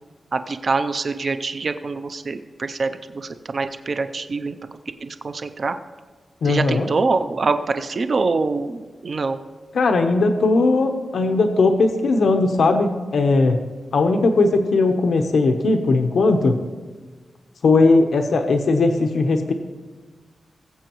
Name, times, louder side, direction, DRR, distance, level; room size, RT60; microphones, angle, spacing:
voice 1, 0.3-4.6 5.0-5.8 6.4-9.4, right 3 dB, 40° right, 10 dB, 0.5 m, -24 dB
voice 2, 6.4-6.9 9.7-13.6 13.9-16.6 17.6-19.5, left 3 dB, 75° left, 5 dB, 0.8 m, -18 dB
20.0 x 7.9 x 3.0 m, 1.4 s
wide cardioid pair, 175°, 0 cm